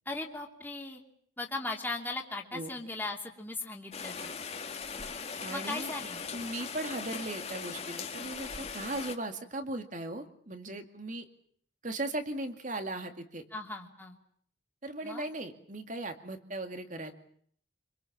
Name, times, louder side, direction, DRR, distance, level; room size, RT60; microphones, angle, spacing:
voice 1, 0.0-1.0 1.4-4.3 5.5-6.2 13.5-14.2 15.0-15.3, left 2 dB, 10° left, 0 dB, 2.9 m, -38 dB
Rain, 3.9-9.2, left 5 dB, 35° left, 1.9 m, -39 dB
voice 2, 5.4-5.9 6.3-11.3 11.8-13.4 14.8-17.1, right 2 dB, 40° right, 7 dB, 2.4 m, -38 dB
26.0 x 25.0 x 7.4 m, 0.62 s
head